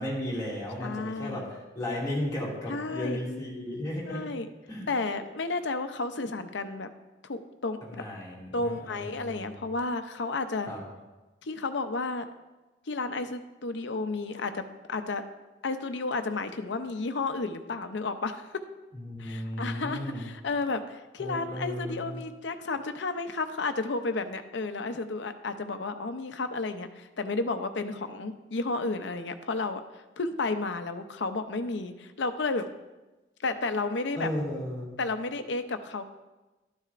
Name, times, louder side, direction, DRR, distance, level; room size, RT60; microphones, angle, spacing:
voice 1, 0.0-4.2 4.7-4.9 7.9-9.6 10.7-10.8 18.9-20.2 21.2-22.2 34.1-35.0, left 1 dB, 20° left, -5 dB, 2.3 m, -34 dB
voice 2, 0.8-1.4 2.7-3.2 4.1-4.5 4.9-6.9 7.2-8.0 8.5-10.7 11.4-12.3 12.9-15.2 15.6-18.5 19.2-32.7 33.4-34.3 35.0-36.0, left 3 dB, 65° left, 9 dB, 0.6 m, -32 dB
12.0 x 9.6 x 2.5 m, 1.1 s
head